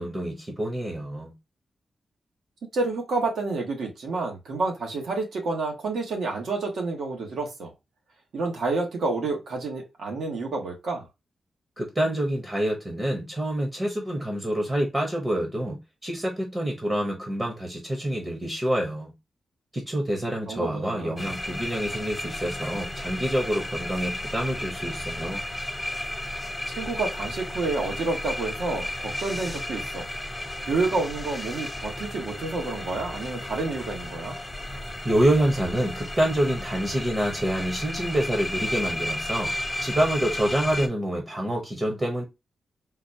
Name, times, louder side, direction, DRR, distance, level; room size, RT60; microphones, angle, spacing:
voice 1, 0.0-1.3 11.8-19.1 19.7-25.4 35.0-39.5 39.8-42.2, right 1 dB, 20° right, 0.7 m, -27 dB
voice 2, 2.7-7.7 8.3-11.1 20.5-21.2 26.8-30.1 30.7-34.4, right 3 dB, 85° right, 1.2 m, -29 dB
sound 1, 21.2-40.9, left 1 dB, 10° left, 0.5 m, -33 dB
3.9 x 2.3 x 2.6 m
wide cardioid pair, 150°, 0 cm